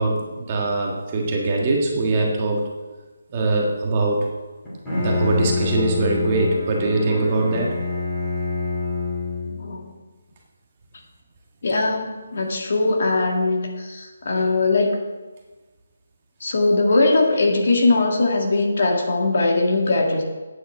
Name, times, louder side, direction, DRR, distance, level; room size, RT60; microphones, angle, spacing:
voice 1, 0.0-2.7 3.3-4.2 4.9-7.8, right 2 dB, 20° right, -1 dB, 1.5 m, -22 dB
Bowed string instrument, 4.6-9.7, left 4 dB, 10° left, 2.8 m, -27 dB
voice 2, 9.4-9.9 11.6-15.1 16.4-20.2, left 2 dB, 45° left, 1 dB, 2.0 m, -20 dB
9.2 x 7.7 x 7.8 m, 1.2 s
hypercardioid pair, 175°, 0 cm